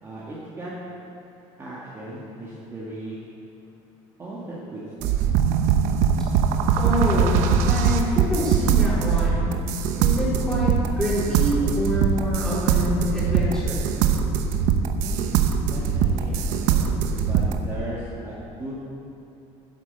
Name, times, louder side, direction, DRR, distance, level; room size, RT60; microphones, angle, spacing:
voice 1, 0.0-0.7 1.6-3.2 4.2-5.1 15.0-18.7, right 2 dB, 20° right, -7 dB, 2.1 m, -37 dB
sound 1, 5.0-17.6, right 6 dB, 75° right, 1.0 m, -22 dB
voice 2, 6.8-9.6 10.0-13.9, equal, 5° left, -8 dB, 4.0 m, -26 dB
12.5 x 10.5 x 6.9 m, 2.8 s
cardioid pair, 165°, 13 cm